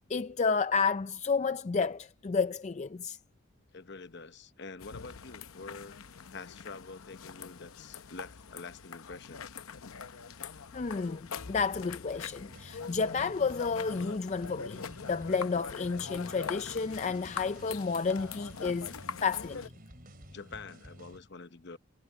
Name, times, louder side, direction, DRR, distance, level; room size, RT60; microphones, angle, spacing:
voice 1, 0.1-3.2 10.7-18.9 19.2-19.6, left 5 dB, 30° left, 0.4 m, -31 dB
voice 2, 3.7-6.0 6.3-9.5 20.3-21.8, left 4 dB, 55° left, 1.0 m, -46 dB
sound 1, 4.8-19.7, left 6 dB, 80° left, 0.8 m, -43 dB
sound 2, 12.5-21.2, right 1 dB, 45° right, 4.0 m, -52 dB
head